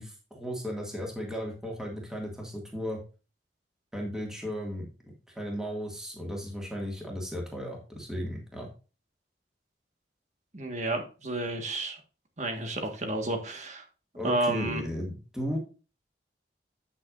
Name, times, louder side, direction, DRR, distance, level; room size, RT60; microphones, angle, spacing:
voice 1, 0.0-3.0 3.9-4.9 5.4-8.7 14.2-15.6, equal, 5° right, -1 dB, 2.1 m, -35 dB
voice 2, 10.5-12.0 12.4-13.8 14.2-14.8, right 1 dB, 40° right, 5 dB, 1.6 m, -31 dB
8.5 x 8.0 x 2.6 m, 0.33 s
head